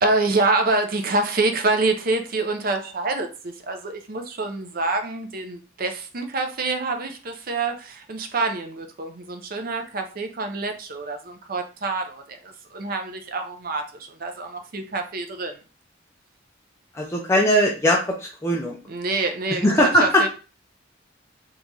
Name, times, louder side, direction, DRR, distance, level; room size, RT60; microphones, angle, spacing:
voice 1, 0.0-15.6 18.9-20.3, right 3 dB, 50° right, 5 dB, 0.5 m, -26 dB
voice 2, 16.9-18.8 19.6-20.2, equal, 15° left, -2 dB, 0.4 m, -20 dB
2.9 x 2.6 x 3.6 m, 0.34 s
head